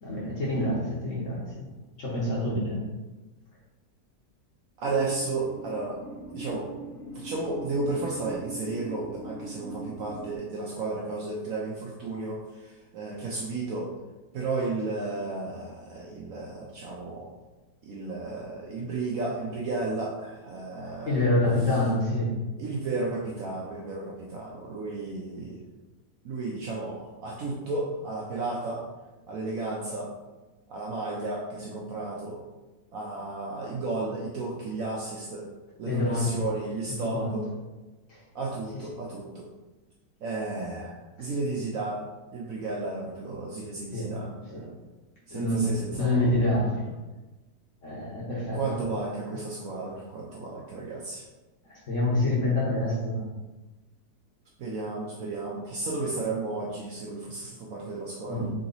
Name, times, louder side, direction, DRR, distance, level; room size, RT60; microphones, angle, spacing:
voice 1, 0.0-1.7 2.0-2.8 21.0-22.3 35.8-36.3 37.0-37.4 38.1-38.2 43.9-44.7 45.3-45.6 46.0-46.9 47.8-48.6 51.7-53.2 58.3-58.5, left 1 dB, 50° left, -5 dB, 1.2 m, -27 dB
sound 1, 4.8-10.4, right 3 dB, 10° right, 0.5 m, -41 dB
voice 2, 4.8-6.0 6.3-6.7 7.1-13.9 14.3-17.3 17.8-21.2 22.6-25.6 26.2-28.8 29.3-30.1 30.7-32.4 32.9-35.5 35.8-37.4 38.3-39.5 40.2-42.1 42.3-44.7 45.3-46.3 48.5-51.2 54.6-58.5, right 3 dB, 65° right, -3 dB, 0.9 m, -33 dB
3.9 x 2.9 x 3.9 m, 1.1 s
omnidirectional pair, 1.9 m